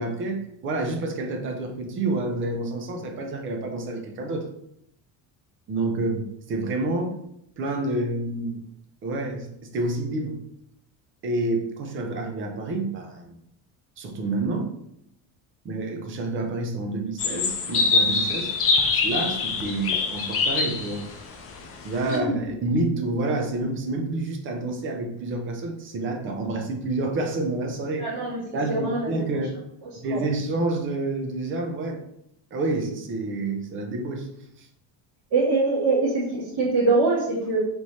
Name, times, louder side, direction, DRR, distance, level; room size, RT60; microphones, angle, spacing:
voice 1, 0.0-4.5 5.7-7.1 7.6-8.6 9.0-10.4 11.2-13.4 14.0-14.7 15.6-18.5 18.8-21.0 21.8-28.1 28.5-29.6 30.0-32.0 32.5-34.3 34.6-34.7, right 2 dB, 30° right, 4 dB, 0.6 m, -28 dB
sound 1, 17.2-22.2, left 4 dB, 35° left, 0.6 m, -24 dB
voice 2, 22.1-22.5 28.0-29.2 30.1-30.2 35.3-37.6, right 3 dB, 50° right, -12 dB, 1.7 m, -24 dB
3.5 x 3.1 x 4.1 m, 0.76 s
cardioid pair, 170°, 39 cm